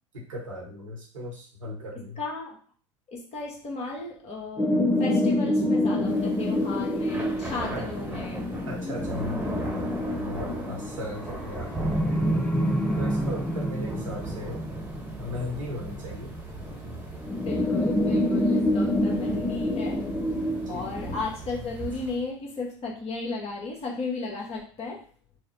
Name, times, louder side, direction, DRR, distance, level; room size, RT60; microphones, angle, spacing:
voice 1, 0.1-2.2 7.7-7.8 8.6-12.4 13.0-14.6 15.2-16.3 20.7-20.9, left 1 dB, 85° right, -3 dB, 1.4 m, -37 dB
voice 2, 1.9-2.6 3.1-8.5 17.4-20.0 20.7-25.0, left 3 dB, 40° left, -1 dB, 1.3 m, -35 dB
sound 1, 4.6-16.4 17.2-21.3, left 1 dB, 10° left, 0.4 m, -27 dB
Thunder / Rain, 6.0-22.3, right 1 dB, 10° right, 1.2 m, -39 dB
4.4 x 2.1 x 3.1 m, 0.42 s
hypercardioid pair, 80°, 16 cm